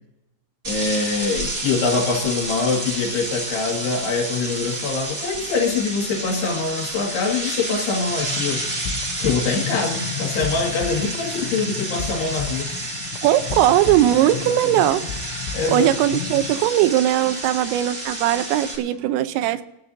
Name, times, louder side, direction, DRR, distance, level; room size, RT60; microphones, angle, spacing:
sound 1, 0.6-18.8, right 1 dB, 25° right, 1.2 m, -30 dB
voice 1, 0.7-8.7 9.2-12.7 15.5-15.9, left 4 dB, 60° left, 1 dB, 3.7 m, -24 dB
sound 2, 8.1-16.5, left 8 dB, 85° left, 3.4 m, -33 dB
voice 2, 13.2-15.0 15.7-19.6, right 13 dB, 85° right, 12 dB, 3.4 m, -19 dB
26.5 x 14.0 x 2.7 m, 0.89 s
omnidirectional pair, 5.8 m